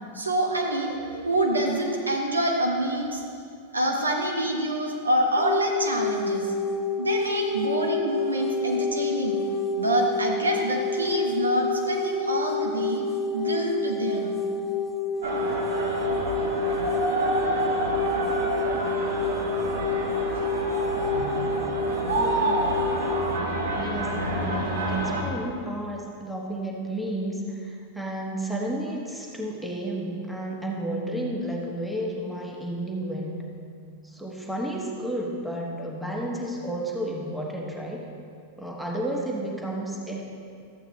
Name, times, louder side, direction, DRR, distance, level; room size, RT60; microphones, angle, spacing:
voice 1, 0.1-3.2 3.7-6.5 7.0-9.4 9.8-13.0 13.3-14.4, right 1 dB, 80° right, 1 dB, 1.0 m, -26 dB
sound 1, 5.4-23.4, left 3 dB, 30° left, 0.5 m, -28 dB
sound 2, 15.2-25.2, right 2 dB, 60° right, 1.3 m, -28 dB
voice 2, 22.2-22.7 23.7-33.3 34.0-38.1 38.6-40.2, right 1 dB, ahead, -2 dB, 1.3 m, -32 dB
13.0 x 8.1 x 3.1 m, 2.4 s
figure-of-eight pair, 90°, 0 cm